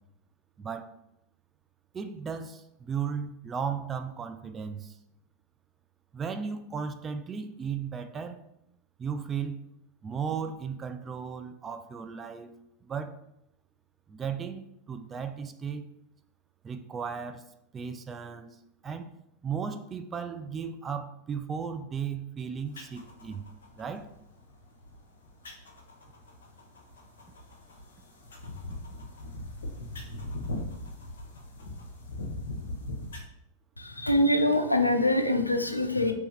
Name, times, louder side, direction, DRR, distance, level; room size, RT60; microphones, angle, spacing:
voice 1, 0.6-0.9 1.9-5.0 6.1-8.5 9.0-9.6 10.0-13.2 14.1-14.6 14.9-15.8 16.6-18.5 18.8-19.2 19.4-23.4 23.8-24.1, right 6 dB, 20° right, 8 dB, 0.3 m, -35 dB
sound 1, 22.7-33.2, left 1 dB, 65° left, 0.7 m, -40 dB
voice 2, 33.8-36.1, left 1 dB, 85° left, 7 dB, 0.4 m, -24 dB
3.4 x 3.1 x 3.1 m, 0.81 s
figure-of-eight pair, 90°, 0 cm